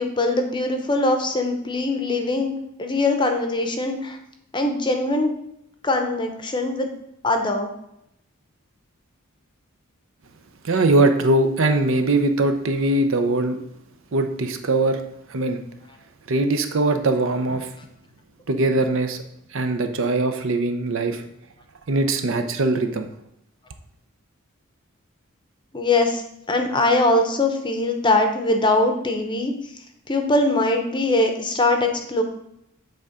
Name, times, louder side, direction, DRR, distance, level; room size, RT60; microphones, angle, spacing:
voice 1, 0.0-4.2 4.5-5.3 5.8-6.9 7.2-7.7 25.7-29.5 30.1-32.2, left 2 dB, 20° left, 5 dB, 0.7 m, -22 dB
voice 2, 10.6-13.6 14.1-15.0 15.3-15.6 16.3-17.7 18.5-19.2 19.5-21.2 21.9-23.1, right 2 dB, 60° right, 7 dB, 0.6 m, -21 dB
8.0 x 3.6 x 5.0 m, 0.79 s
head